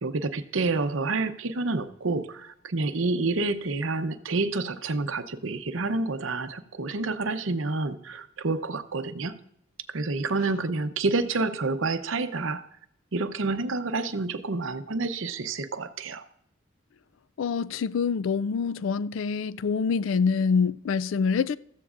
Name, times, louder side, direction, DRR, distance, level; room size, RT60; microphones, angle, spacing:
voice 1, 0.0-9.4 9.9-12.6 13.1-16.2, right 3 dB, 65° right, 0.8 m, -28 dB
voice 2, 17.4-21.6, left 5 dB, 65° left, 0.4 m, -25 dB
15.0 x 14.0 x 2.5 m
head